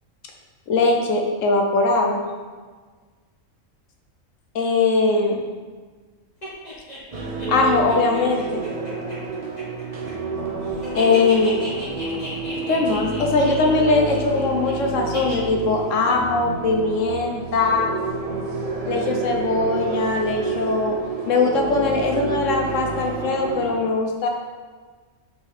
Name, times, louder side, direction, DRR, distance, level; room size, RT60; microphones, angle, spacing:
voice 1, 0.7-2.2 4.5-5.5 7.5-8.6 10.9-11.6 12.7-17.9 18.8-21.0 21.3-24.3, left 3 dB, 75° left, 2 dB, 1.3 m, -21 dB
sound 1, 6.4-10.4 10.7-14.7 15.1-15.5, left 1 dB, 30° left, 2.0 m, -35 dB
sound 2, 7.1-23.8, right 4 dB, 35° right, 0.7 m, -29 dB
6.9 x 5.3 x 4.3 m, 1.4 s
omnidirectional pair, 1.4 m